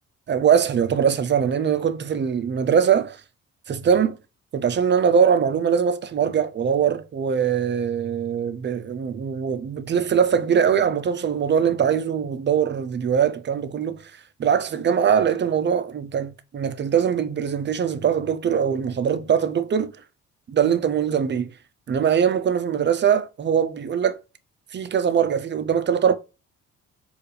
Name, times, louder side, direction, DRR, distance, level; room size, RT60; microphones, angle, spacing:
voice 1, 0.3-3.2 3.7-4.2 4.5-14.0 14.4-19.9 20.5-21.5 21.9-24.2 24.7-26.2, right 7 dB, 35° right, 0.5 m, -22 dB
4.4 x 2.5 x 3.2 m
cardioid pair, 90°, 30 cm